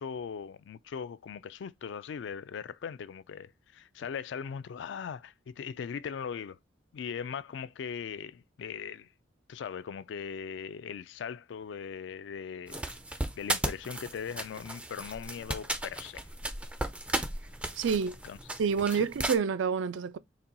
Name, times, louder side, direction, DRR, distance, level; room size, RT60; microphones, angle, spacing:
voice 1, 0.0-6.6 6.9-9.1 9.5-12.8 13.4-16.3 18.2-18.4 18.9-19.1, left 7 dB, 65° left, 0.3 m, -39 dB
sound 1, 12.7-19.4, right 1 dB, 5° right, 0.4 m, -35 dB
voice 2, 17.8-18.1 18.6-20.2, right 6 dB, 80° right, 0.4 m, -28 dB
4.1 x 2.3 x 3.8 m
head